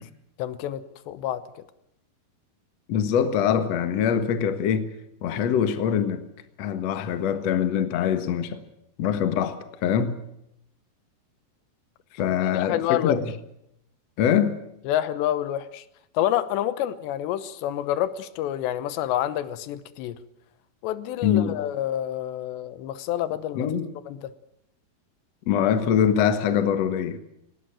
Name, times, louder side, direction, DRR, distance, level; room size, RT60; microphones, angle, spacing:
voice 1, 0.4-1.6 12.5-13.2 14.9-15.8 16.1-20.2 20.8-23.7 24.1-24.3, left 12 dB, 85° left, 14 dB, 3.2 m, -28 dB
voice 2, 2.9-4.9 5.2-6.2 6.6-8.6 9.0-10.2 12.1-13.3 14.2-14.6 21.2-21.6 23.6-23.9 25.5-27.2, left 8 dB, 55° left, 10 dB, 1.9 m, -23 dB
19.0 x 18.5 x 8.9 m, 0.80 s
omnidirectional pair, 4.9 m